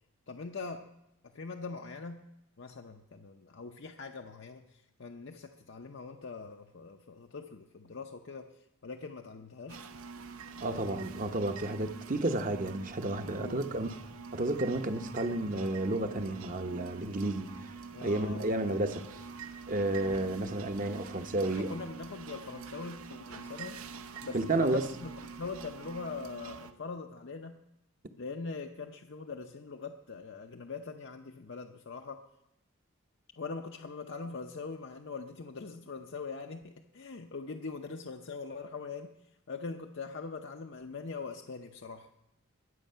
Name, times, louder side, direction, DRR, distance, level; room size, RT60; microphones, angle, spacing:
voice 1, 0.3-0.9 1.3-2.3 2.6-8.5 8.8-9.8 13.4-14.0 17.9-18.4 21.4-23.8 24.2-27.6 28.1-32.2 33.4-39.1 39.5-42.1, left 4 dB, 55° left, 0.6 m, -42 dB
sound 1, 9.7-26.7, right 5 dB, 75° right, 0.9 m, -46 dB
voice 2, 10.6-13.9 14.3-17.7 18.0-19.2 19.7-21.7 24.3-24.9, right 2 dB, 40° right, 0.9 m, -31 dB
21.5 x 8.4 x 5.6 m
head